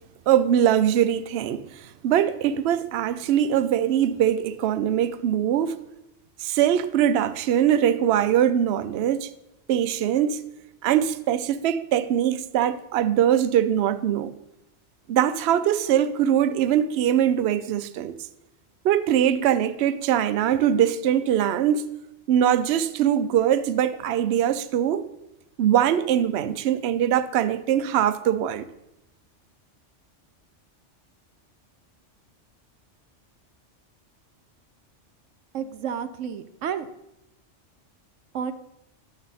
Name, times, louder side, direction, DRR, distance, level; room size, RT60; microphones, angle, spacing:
voice 1, 0.3-5.8 6.4-9.3 9.7-10.4 10.8-14.3 15.1-18.2 18.8-21.8 22.3-25.0 25.6-28.7, right 10 dB, 65° right, 0.8 m, -22 dB
voice 2, 35.5-36.9 38.3-38.5, right 8 dB, 80° right, 1.1 m, -31 dB
12.0 x 7.1 x 4.0 m
omnidirectional pair, 1.3 m